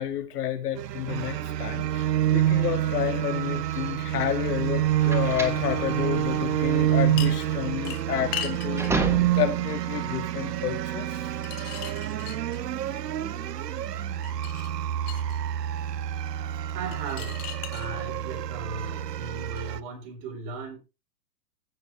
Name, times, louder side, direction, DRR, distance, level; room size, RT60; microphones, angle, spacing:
voice 1, 0.0-8.9 9.3-11.3, left 10 dB, 70° left, 2.5 m, -30 dB
sound 1, 0.8-19.8, right 12 dB, 80° right, 0.9 m, -28 dB
sound 2, 3.7-9.7, right 2 dB, 5° right, 1.3 m, -33 dB
sound 3, 7.2-7.5 7.8-9.0 11.3-12.8 14.2-15.4 16.9-17.9 19.5-19.6, left 12 dB, 30° left, 1.9 m, -37 dB
voice 2, 16.7-20.8, right 4 dB, 45° right, 5.5 m, -37 dB
16.0 x 6.6 x 3.6 m
hypercardioid pair, 140°, 49 cm